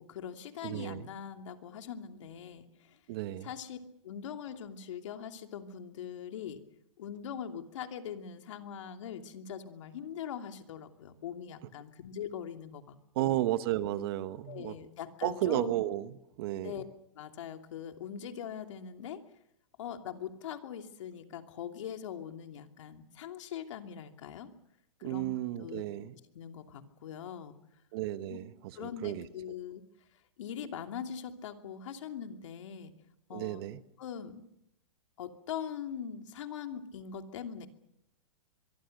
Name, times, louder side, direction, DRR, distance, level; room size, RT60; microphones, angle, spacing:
voice 1, 0.0-3.0 3.4-3.8 4.0-6.6 7.0-13.4 14.5-15.8 16.6-16.8 17.2-19.2 19.8-24.5 25.0-25.3 25.6-25.8 26.3-27.6 28.3-28.4 28.7-29.8 30.4-32.9 33.3-33.6 34.0-34.4 35.2-37.7, left 8 dB, 65° left, 5 dB, 2.8 m, -42 dB
voice 2, 0.6-1.1 3.1-3.5 13.1-14.8 15.2-16.9 25.0-26.1 27.9-29.3 33.3-33.8, right 14 dB, 45° right, 12 dB, 1.3 m, -33 dB
24.0 x 23.5 x 6.7 m, 0.80 s
hypercardioid pair, 155°, 17 cm